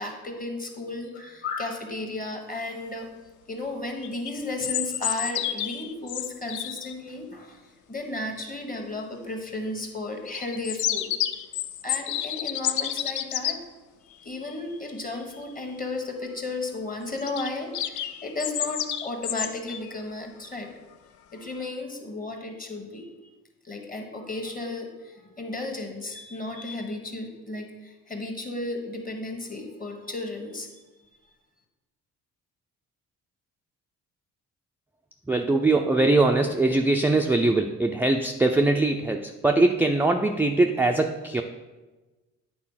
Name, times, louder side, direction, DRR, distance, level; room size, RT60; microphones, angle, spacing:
voice 1, 0.0-3.1 3.5-11.1 11.8-13.6 14.0-20.7 21.3-23.3 23.6-30.7, left 2 dB, 30° left, 3 dB, 1.5 m, -34 dB
sound 1, 4.0-6.9 10.3-13.6 17.2-19.9, left 11 dB, 75° left, 0.5 m, -30 dB
voice 2, 35.3-41.4, right 2 dB, 5° right, 3 dB, 0.4 m, -22 dB
8.7 x 4.0 x 5.6 m, 1.2 s
cardioid pair, 90°, 30 cm